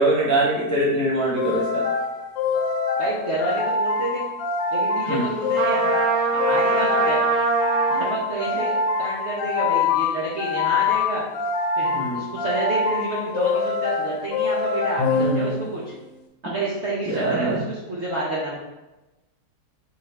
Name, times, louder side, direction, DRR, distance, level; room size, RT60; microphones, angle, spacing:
voice 1, 0.0-1.9 5.0-5.3 11.9-12.2 15.2-15.5 17.1-17.6, right 1 dB, 20° left, -7 dB, 0.5 m, -23 dB
sound 1, 1.4-15.9, left 4 dB, 80° left, 1.3 m, -25 dB
voice 2, 3.0-4.2 4.7-5.9 6.3-7.2 7.9-11.2 11.8-15.9 16.4-18.6, right 1 dB, 55° right, -6 dB, 0.8 m, -29 dB
Trumpet, 5.5-8.1, right 4 dB, 80° right, 0.4 m, -22 dB
4.7 x 3.1 x 3.3 m, 1.0 s
omnidirectional pair, 2.0 m